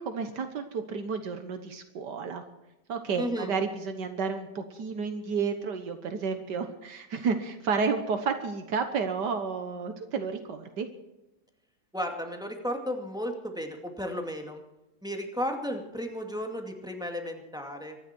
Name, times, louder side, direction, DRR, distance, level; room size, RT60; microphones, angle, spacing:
voice 1, 0.0-2.4 2.9-10.9, right 5 dB, 80° right, 7 dB, 1.9 m, -31 dB
voice 2, 3.2-3.5 11.9-14.6 15.0-18.0, equal, ahead, 3 dB, 2.3 m, -34 dB
24.0 x 11.5 x 4.5 m, 0.95 s
omnidirectional pair, 1.8 m